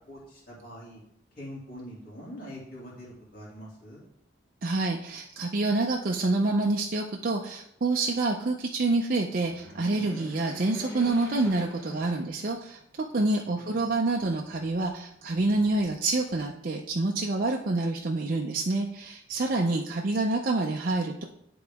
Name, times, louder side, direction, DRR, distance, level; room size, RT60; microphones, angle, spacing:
voice 1, 0.1-1.0 1.3-4.0 13.1-13.8, equal, 50° left, -6 dB, 2.4 m, -44 dB
voice 2, 4.6-12.8 13.1-21.2, right 2 dB, 45° right, 0 dB, 0.5 m, -27 dB
sound 1, 9.3-12.8 13.3-13.4 14.5-15.3, equal, 15° left, 1.0 m, -43 dB
10.5 x 3.9 x 3.5 m, 0.75 s
head